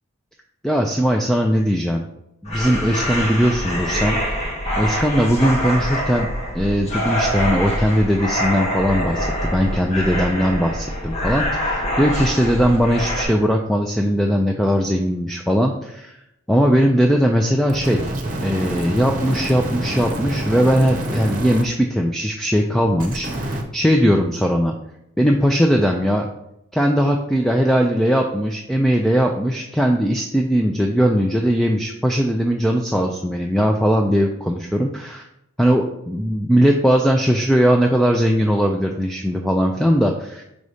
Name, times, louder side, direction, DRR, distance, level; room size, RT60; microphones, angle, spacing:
voice 1, 0.6-2.1 2.4-4.2 4.8-6.3 6.5-16.2 16.5-18.1 18.4-24.7 25.2-26.3 26.7-35.2 35.6-40.4, equal, ahead, 2 dB, 0.3 m, -19 dB
sound 1, 2.5-13.2, equal, 30° left, 1.4 m, -25 dB
sound 2, 17.7-21.6 23.0-23.6, right 1 dB, 35° right, 0.9 m, -27 dB
5.0 x 4.1 x 4.9 m, 0.83 s
head